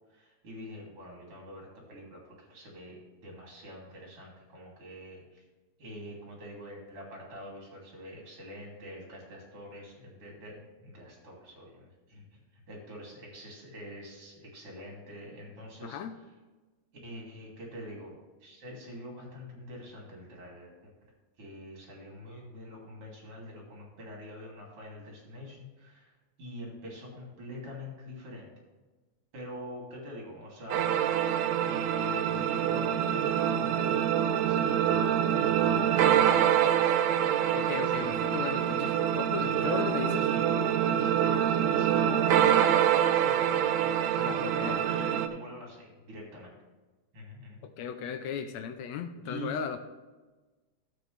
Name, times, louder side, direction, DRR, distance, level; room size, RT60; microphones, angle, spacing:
voice 1, 0.1-5.4 5.8-12.3 12.5-16.0 17.0-18.2 18.4-20.9 21.4-26.1 26.4-28.5 29.3-30.9 31.7-36.9 37.8-38.3 39.4-42.8 43.1-46.5 47.1-47.6 49.2-49.6, equal, 50° right, -2 dB, 3.8 m, -44 dB
voice 2, 15.8-16.2 37.5-40.2 44.2-45.2 47.6-49.8, left 7 dB, 75° left, 8 dB, 1.8 m, -36 dB
sound 1, 30.7-45.3, right 10 dB, 75° right, 1.9 m, -26 dB
12.5 x 7.9 x 3.4 m, 1.2 s
omnidirectional pair, 3.4 m